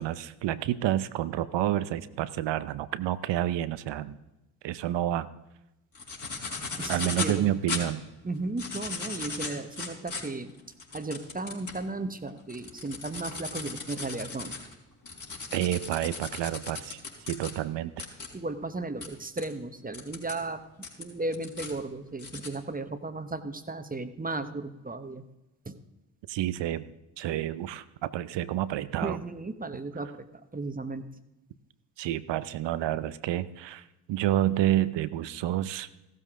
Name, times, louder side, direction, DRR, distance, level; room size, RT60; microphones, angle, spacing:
voice 1, 0.0-4.2 4.6-5.3 6.9-8.0 15.5-17.0 17.3-18.0 26.3-26.8 27.2-29.2 32.0-35.9, right 13 dB, 60° right, 15 dB, 0.8 m, -29 dB
sound 1, 5.9-7.4 7.7-7.8 8.4-11.8 12.3-17.5 18.0-18.3 19.0-19.1 19.4-19.5 19.9-20.4 20.8-21.7 22.2-22.5, left 4 dB, 40° left, 4.6 m, -37 dB
voice 2, 6.8-7.6 8.2-10.5 10.9-14.5 18.3-25.2 25.6-25.8 29.0-30.3 30.5-31.1, right 2 dB, 15° right, 9 dB, 1.2 m, -35 dB
15.0 x 13.0 x 3.7 m, 0.96 s
hypercardioid pair, 50°, 49 cm